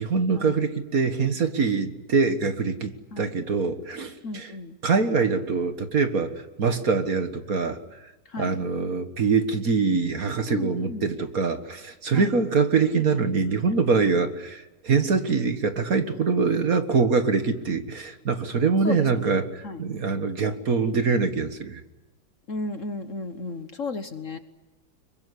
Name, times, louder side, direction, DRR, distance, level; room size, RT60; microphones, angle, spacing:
voice 1, 0.0-4.5 4.8-8.0 8.4-21.8, right 4 dB, 50° right, 8 dB, 1.9 m, -24 dB
voice 2, 4.2-4.8 8.3-8.5 10.5-11.1 12.1-12.3 18.8-19.4 19.6-19.8 22.5-24.4, left 3 dB, 45° left, 9 dB, 1.4 m, -33 dB
26.0 x 23.0 x 9.8 m, 1.1 s
omnidirectional pair, 2.1 m